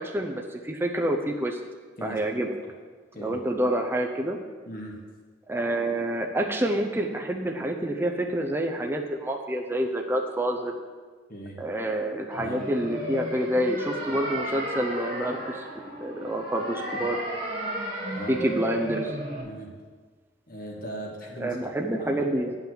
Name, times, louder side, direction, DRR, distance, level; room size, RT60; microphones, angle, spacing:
voice 1, 0.0-1.6 2.0-2.5 3.1-4.4 5.5-10.7 11.6-15.7 16.0-17.2 18.3-19.2 21.4-22.6, right 1 dB, 15° right, 1 dB, 0.7 m, -28 dB
voice 2, 4.7-5.0 11.3-11.6 12.4-12.6 17.0-17.1 18.1-18.4 19.4-19.7 20.5-21.6 22.0-22.3, right 1 dB, 50° left, -1 dB, 2.0 m, -39 dB
sound 1, 12.3-19.4, equal, 50° right, 2.7 m, -34 dB
8.7 x 5.8 x 7.9 m, 1.5 s
head